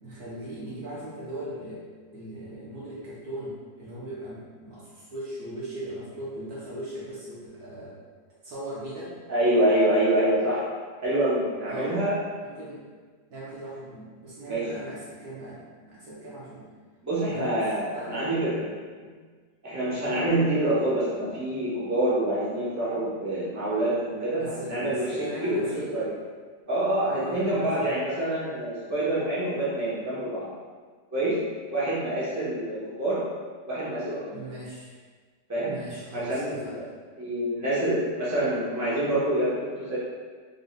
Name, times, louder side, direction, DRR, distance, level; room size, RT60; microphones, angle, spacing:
voice 1, 0.0-8.0 8.4-9.2 11.7-12.0 12.4-12.8 13.3-15.6 15.9-16.7 17.2-18.4 19.0-19.2 19.8-20.0 24.4-26.2 27.0-27.9 34.3-34.9 35.5-36.8, right 1 dB, 60° right, -7 dB, 1.3 m, -39 dB
voice 2, 9.3-10.6 11.0-12.2 14.4-14.7 17.0-18.7 19.6-26.1 26.7-30.5 31.1-31.4 31.7-33.2 33.6-34.2 35.5-35.8 36.1-36.8 37.2-40.0, right 1 dB, 10° right, -10 dB, 1.0 m, -26 dB
3.9 x 3.9 x 2.4 m, 1.5 s
omnidirectional pair, 1.9 m